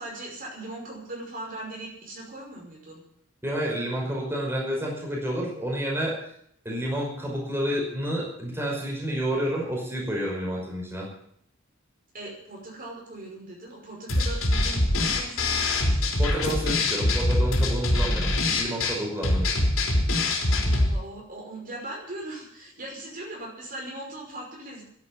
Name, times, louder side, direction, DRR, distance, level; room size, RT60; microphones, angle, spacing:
voice 1, 0.0-3.0 12.1-16.2 20.4-24.8, right 1 dB, 45° right, -1 dB, 5.5 m, -39 dB
voice 2, 3.4-6.2 6.6-11.1 16.2-19.6, equal, 10° right, -2 dB, 5.5 m, -29 dB
sound 1, 14.1-20.9, left 1 dB, 70° left, 3.6 m, -24 dB
12.0 x 11.0 x 10.0 m, 0.69 s
head